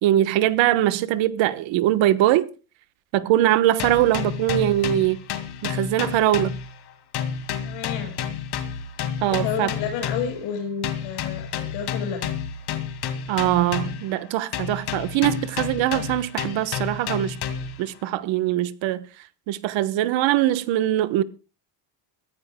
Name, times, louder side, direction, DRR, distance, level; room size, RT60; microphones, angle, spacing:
voice 1, 0.0-2.5 3.1-5.2 5.6-6.5 9.2-9.7 13.3-17.4 17.8-19.0 19.5-21.2, right 13 dB, 65° right, 1.2 m, -22 dB
sound 1, 3.8-6.9 7.1-10.4 10.8-14.2 14.5-17.8, left 7 dB, 50° left, 2.3 m, -30 dB
voice 2, 7.6-8.1 9.2-12.3, left 8 dB, 85° left, 5.7 m, -31 dB
23.5 x 14.5 x 2.3 m
cardioid pair, 115°, 49 cm